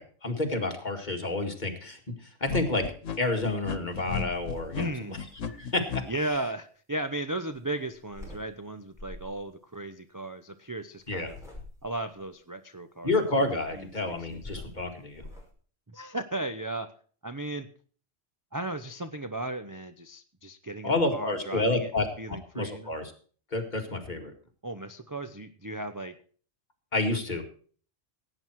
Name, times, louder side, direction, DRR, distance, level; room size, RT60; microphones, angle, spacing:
voice 1, 0.0-2.9 3.2-5.2 5.5-6.0 11.1-11.3 13.0-15.2 20.8-23.1 23.5-24.3 26.9-27.4, left 2 dB, 35° left, 4 dB, 2.2 m, -29 dB
sound 1, 2.5-6.0, left 6 dB, 85° left, 1.5 m, -34 dB
sound 2, 3.3-3.6 3.9-6.4 7.5-8.4 8.9-9.4 11.0-12.1 13.6-15.5, left 2 dB, ahead, 5.5 m, -47 dB
voice 2, 4.7-5.2 6.1-11.4 11.8-13.1 13.7-13.9 14.2-14.4 15.9-16.9 17.2-17.7 18.5-21.9 22.2-22.9 24.6-26.1 27.1-27.2, right 1 dB, 20° right, 8 dB, 0.6 m, -35 dB
17.0 x 9.0 x 4.6 m, 0.43 s
omnidirectional pair, 1.3 m